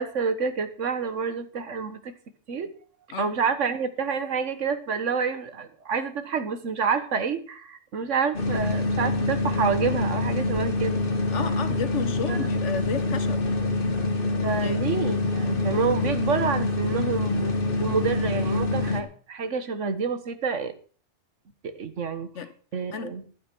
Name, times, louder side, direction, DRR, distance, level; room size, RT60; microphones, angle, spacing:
voice 1, 0.0-2.1 2.5-2.7 3.2-11.0 12.3-12.5 14.4-20.7 21.6-22.3 22.7-23.2, right 5 dB, 90° right, 1.6 m, -28 dB
sound 1, 8.3-19.0, left 2 dB, 50° left, 1.8 m, -26 dB
voice 2, 11.3-13.4 14.6-14.8 22.3-22.5 22.9-23.1, left 6 dB, 75° left, 1.5 m, -32 dB
12.0 x 9.3 x 6.1 m
omnidirectional pair, 1.2 m